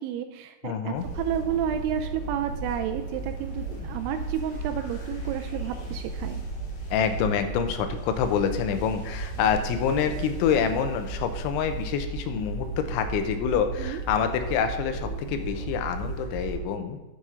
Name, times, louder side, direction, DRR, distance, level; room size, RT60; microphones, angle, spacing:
voice 1, 0.0-6.4 13.8-14.0, right 9 dB, 90° right, 6 dB, 2.2 m, -31 dB
voice 2, 0.6-1.1 6.9-17.0, left 7 dB, 90° left, 8 dB, 3.2 m, -27 dB
sound 1, 1.0-16.6, right 3 dB, 65° left, 4.2 m, -35 dB
9.6 x 5.7 x 5.0 m, 1.1 s
omnidirectional pair, 5.2 m